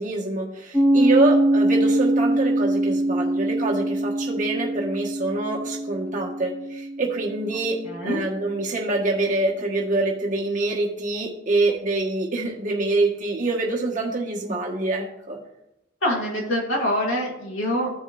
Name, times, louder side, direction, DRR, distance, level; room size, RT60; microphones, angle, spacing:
voice 1, 0.0-15.4, right 2 dB, 35° right, -2 dB, 1.5 m, -25 dB
Piano, 0.7-8.0, right 1 dB, 10° right, 1.2 m, -23 dB
voice 2, 7.8-8.2 16.0-17.9, equal, 70° left, -3 dB, 1.9 m, -25 dB
15.0 x 5.2 x 2.6 m, 0.86 s
head